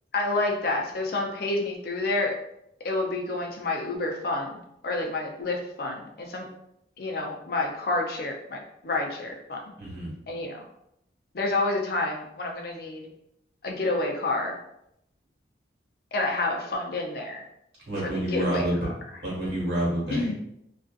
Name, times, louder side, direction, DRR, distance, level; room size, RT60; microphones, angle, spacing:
voice 1, 0.1-2.4 2.8-4.6 4.8-6.5 7.0-9.6 10.3-10.6 11.3-13.1 13.6-14.6 16.1-17.4 18.0-18.7 20.1-20.4, left 2 dB, 55° left, 1 dB, 0.5 m, -29 dB
voice 2, 9.8-10.1 17.9-18.8 19.2-20.3, right 1 dB, 70° right, -6 dB, 1.2 m, -28 dB
2.5 x 2.4 x 2.3 m, 0.78 s
head